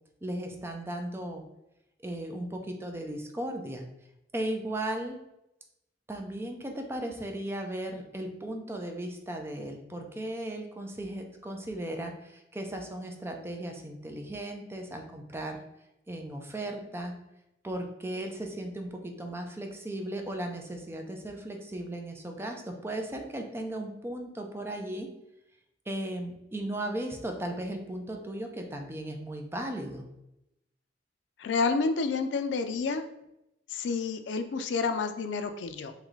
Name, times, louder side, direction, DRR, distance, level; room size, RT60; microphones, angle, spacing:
voice 1, 0.2-1.4 2.0-3.8 4.3-5.2 6.1-15.6 16.1-17.1 17.6-25.1 25.9-30.1, right 1 dB, 15° right, 3 dB, 0.5 m, -36 dB
voice 2, 31.4-33.1 33.7-35.9, left 4 dB, 80° left, 8 dB, 0.4 m, -29 dB
3.7 x 3.1 x 3.1 m, 0.86 s
head